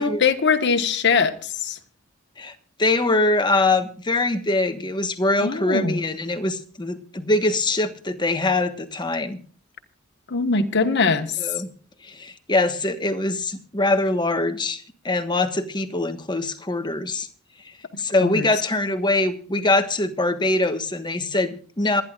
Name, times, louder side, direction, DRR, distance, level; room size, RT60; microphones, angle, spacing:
voice 1, 0.0-1.8 5.4-6.0 10.3-11.4 18.2-18.5, left 5 dB, 55° left, 7 dB, 1.4 m, -22 dB
voice 2, 2.8-9.4 11.4-11.7 12.0-17.3 18.0-22.0, left 2 dB, 20° left, 8 dB, 1.3 m, -23 dB
27.0 x 10.5 x 2.5 m, 0.43 s
head